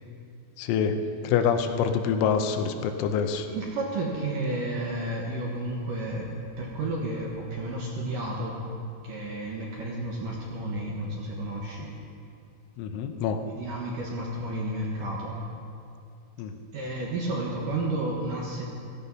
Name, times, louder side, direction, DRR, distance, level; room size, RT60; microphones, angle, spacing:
voice 1, 0.6-3.5 12.8-13.4 16.4-16.6, left 6 dB, 85° left, 6 dB, 3.3 m, -26 dB
voice 2, 3.5-8.6 9.0-11.9 13.5-15.4 16.7-18.6, right 2 dB, 65° right, -3 dB, 2.3 m, -32 dB
16.5 x 14.0 x 5.5 m, 2.5 s
omnidirectional pair, 5.5 m